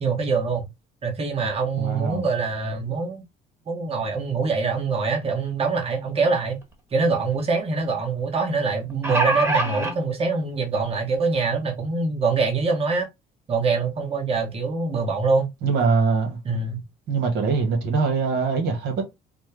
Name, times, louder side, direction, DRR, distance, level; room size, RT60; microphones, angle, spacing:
voice 1, 0.0-0.6 1.0-3.2 3.7-6.6 6.9-13.1 13.5-15.5 16.4-16.8, right 4 dB, 35° right, 1.2 m, -24 dB
voice 2, 1.8-2.3 15.6-16.4 17.1-19.0, right 4 dB, 80° right, 1.5 m, -23 dB
sound 1, 6.6-6.7 7.0-7.1 8.7-9.9 10.9-11.0 11.4-11.5, right 2 dB, 15° right, 1.2 m, -23 dB
4.2 x 2.1 x 3.3 m
cardioid pair, 110°, 17 cm